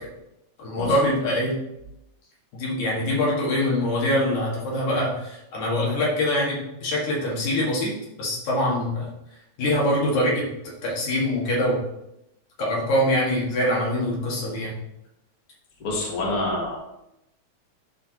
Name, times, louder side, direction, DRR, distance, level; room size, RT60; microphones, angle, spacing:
voice 1, 0.6-1.6 2.5-7.9 8.2-9.1 9.6-10.5 10.8-11.8 12.6-14.7, left 1 dB, 80° left, -4 dB, 3.0 m, -24 dB
voice 2, 15.8-16.8, left 2 dB, 50° left, -3 dB, 2.4 m, -27 dB
12.0 x 4.4 x 2.8 m, 0.86 s
omnidirectional pair, 3.3 m